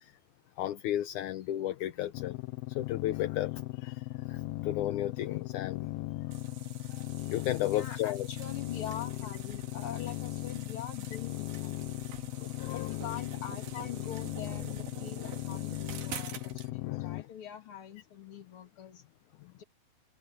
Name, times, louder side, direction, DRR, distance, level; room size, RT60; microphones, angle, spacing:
voice 1, 0.6-2.4 2.7-4.0 4.3-5.9 7.3-8.3 12.4-12.9 15.2-15.3 16.7-17.1, left 13 dB, 75° left, 2.0 m, -34 dB
sound 1, 2.1-17.2, left 21 dB, 90° left, 2.6 m, -38 dB
sound 2, 6.3-16.7, right 9 dB, 85° right, 4.2 m, -47 dB
voice 2, 7.7-12.0 12.7-19.0 19.5-19.6, left 9 dB, 40° left, 2.8 m, -44 dB
omnidirectional pair, 4.2 m